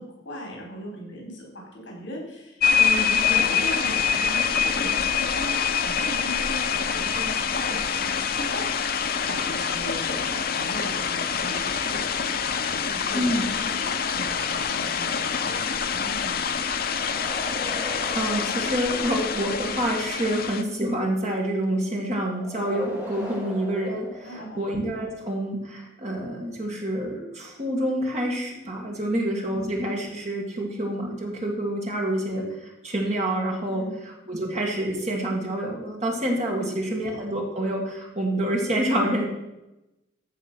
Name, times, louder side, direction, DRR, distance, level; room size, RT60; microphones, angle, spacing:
voice 1, 0.0-12.3 12.7-16.4 20.3-20.5 24.2-24.6 29.0-29.2 33.7-33.9 36.5-36.7, equal, 70° left, -1 dB, 4.2 m, -38 dB
sound 1, 2.6-20.6, left 6 dB, 50° left, 0.6 m, -26 dB
voice 2, 13.1-13.5 17.7-32.5 32.8-39.3, right 1 dB, 35° right, -1 dB, 2.2 m, -27 dB
sound 2, 16.9-19.7 22.3-25.0, equal, 10° right, 2.2 m, -40 dB
14.5 x 5.1 x 6.3 m, 0.95 s
head